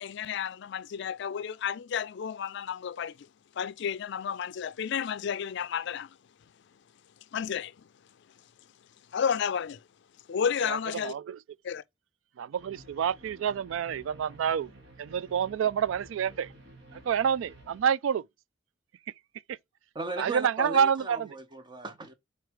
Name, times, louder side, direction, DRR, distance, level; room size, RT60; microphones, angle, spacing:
voice 1, 0.0-3.2 3.6-6.1 7.3-7.7 9.1-9.8 10.3-11.1 11.6-11.8, left 7 dB, 60° left, 0.4 m, -31 dB
voice 2, 11.0-11.4 12.4-14.7 15.0-16.5 17.1-18.2 20.2-21.3, right 8 dB, 80° right, 0.3 m, -28 dB
sound 1, 12.6-17.8, right 1 dB, 60° right, 2.4 m, -52 dB
voice 3, 19.9-22.1, right 2 dB, 25° right, 0.8 m, -37 dB
4.6 x 4.4 x 4.7 m
head